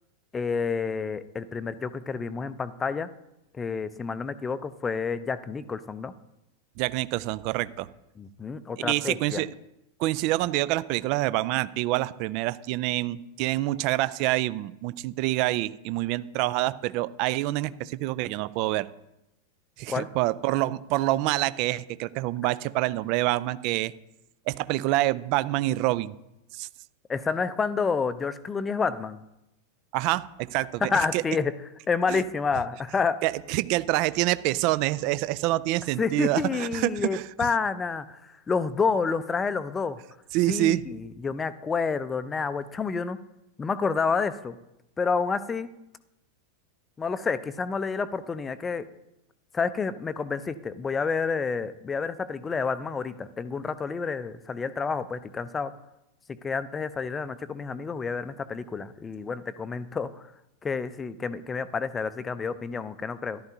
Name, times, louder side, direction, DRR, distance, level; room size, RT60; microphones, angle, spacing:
voice 1, 0.3-3.1 3.5-6.1 8.2-9.4 19.9-20.1 27.1-29.2 30.8-31.6 31.9-33.2 36.0-40.0 40.5-43.2 43.6-44.6 45.0-45.7 47.0-48.9 49.5-55.7 56.3-60.3 60.6-63.4, left 5 dB, 15° left, 14 dB, 0.5 m, -29 dB
voice 2, 6.8-7.9 8.8-9.5 10.0-18.9 19.8-23.9 24.5-26.1 26.5-26.7 29.9-30.8 31.1-31.2 32.1-32.2 33.2-37.2 40.3-40.8, right 17 dB, 45° right, 17 dB, 0.4 m, -26 dB
14.0 x 11.5 x 2.7 m, 0.88 s
figure-of-eight pair, 90°, 0 cm